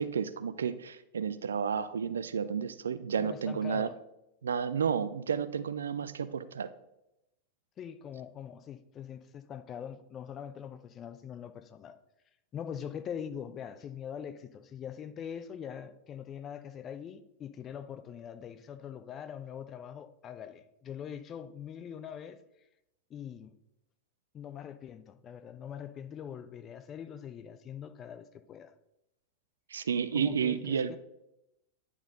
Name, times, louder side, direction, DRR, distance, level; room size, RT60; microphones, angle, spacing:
voice 1, 0.0-3.9 4.4-6.7 29.7-31.0, right 7 dB, 70° right, 0.4 m, -31 dB
voice 2, 3.2-4.0 7.8-12.0 12.5-22.4 23.1-23.5 24.3-28.7 30.1-31.0, left 8 dB, 30° left, 0.5 m, -43 dB
10.0 x 4.4 x 3.8 m
figure-of-eight pair, 90°, 0 cm